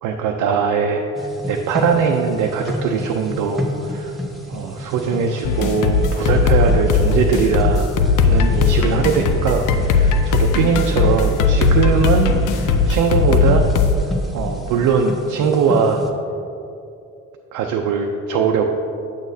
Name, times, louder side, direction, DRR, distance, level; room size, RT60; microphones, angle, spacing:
voice 1, 0.0-4.2 4.5-13.7 14.3-16.0 17.5-18.6, right 5 dB, 90° right, 2 dB, 0.5 m, -20 dB
sound 1, 1.1-16.1, left 1 dB, ahead, 0.8 m, -31 dB
sound 2, 5.4-14.0, left 4 dB, 85° left, 0.5 m, -17 dB
8.0 x 6.3 x 2.7 m, 2.7 s
cardioid pair, 90°, 30 cm